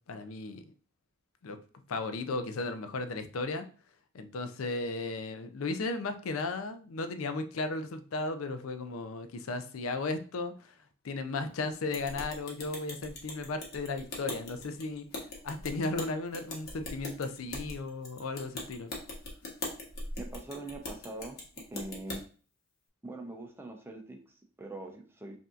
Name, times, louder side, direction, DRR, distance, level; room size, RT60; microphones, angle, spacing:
voice 1, 0.1-0.6 1.4-1.6 1.9-3.7 4.1-10.7 11.0-15.1 15.4-18.9, left 3 dB, 90° left, 9 dB, 0.5 m, -35 dB
sound 1, 11.9-22.2, left 2 dB, 50° left, 1.1 m, -41 dB
voice 2, 20.2-21.4 21.7-22.2 23.0-25.4, right 2 dB, 10° right, 2 dB, 0.6 m, -43 dB
5.5 x 2.7 x 2.4 m, 0.40 s
head